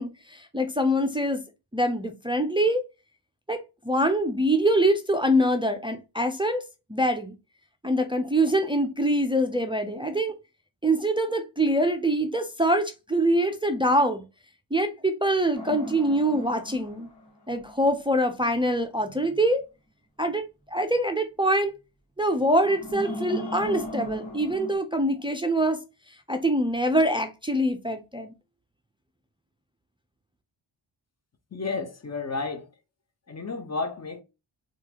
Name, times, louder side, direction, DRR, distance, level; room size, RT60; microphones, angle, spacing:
voice 1, 0.0-1.4 1.7-2.8 3.5-6.6 6.9-7.3 7.8-10.4 10.8-14.2 14.7-17.1 17.5-19.6 20.2-21.7 22.2-25.8 26.3-28.3, right 1 dB, 10° right, 0.4 m, -24 dB
sound 1, 15.5-17.9 22.6-24.7, equal, 55° left, 1.6 m, -37 dB
voice 2, 31.5-32.7 33.3-34.2, left 4 dB, 35° left, 0.7 m, -32 dB
3.8 x 2.4 x 2.8 m
wide cardioid pair, 115°, 48 cm